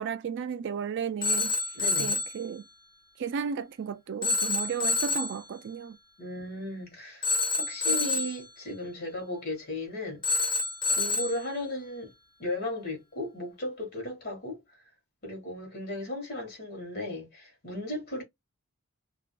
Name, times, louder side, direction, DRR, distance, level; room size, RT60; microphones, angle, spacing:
voice 1, 0.0-1.5 2.0-2.6 3.2-6.0, right 7 dB, 55° right, 0.4 m, -34 dB
Telephone, 1.2-2.4 4.2-5.4 7.2-8.4 10.2-11.4, left 3 dB, 20° left, 0.5 m, -28 dB
voice 2, 1.7-2.2 6.2-10.5 10.9-12.1 12.4-14.6 15.2-18.2, left 1 dB, 50° left, 1.4 m, -36 dB
3.5 x 2.4 x 2.2 m
head